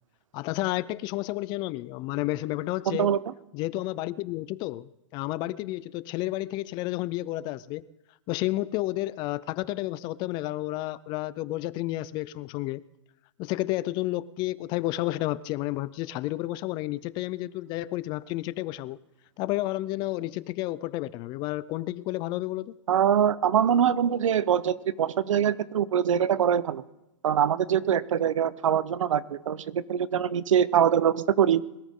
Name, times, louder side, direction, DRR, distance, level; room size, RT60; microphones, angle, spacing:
voice 1, 0.3-3.1 3.5-7.8 8.3-12.8 13.4-19.0 19.4-22.8, left 17 dB, 25° left, 0.4 m, -31 dB
voice 2, 2.9-3.2 22.9-26.8 27.2-31.6, right 9 dB, 90° right, 0.9 m, -23 dB
21.5 x 13.5 x 3.7 m
hypercardioid pair, 150°, 16 cm